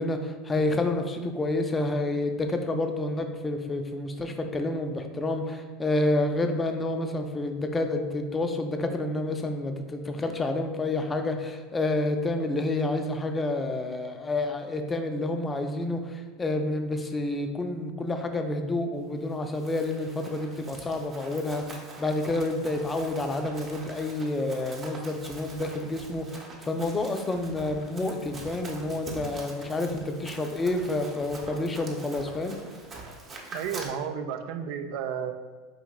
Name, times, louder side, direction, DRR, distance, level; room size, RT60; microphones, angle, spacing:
voice 1, 0.0-32.6, left 2 dB, 20° left, 5 dB, 0.4 m, -29 dB
Run, 19.3-33.9, right 2 dB, 30° right, 0.8 m, -44 dB
voice 2, 33.5-35.3, right 8 dB, 60° right, 7 dB, 0.3 m, -32 dB
4.7 x 2.9 x 2.3 m, 1.4 s
hypercardioid pair, 100°, 0 cm